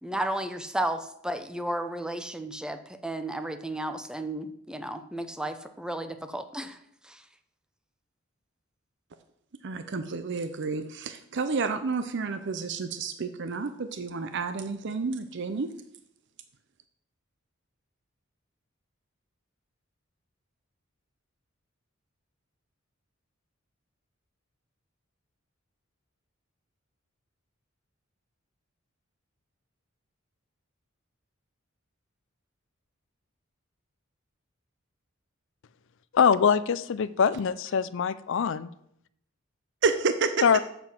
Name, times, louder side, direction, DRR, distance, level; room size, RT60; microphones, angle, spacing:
voice 1, 0.0-6.8 7.0-7.2, right 1 dB, 5° right, 9 dB, 0.6 m, -33 dB
voice 2, 9.6-15.7 39.8-40.3, right 4 dB, 60° right, 9 dB, 0.6 m, -30 dB
voice 3, 36.1-38.7 40.4-40.6, left 6 dB, 65° left, 15 dB, 0.4 m, -23 dB
7.6 x 6.9 x 5.9 m, 0.74 s
head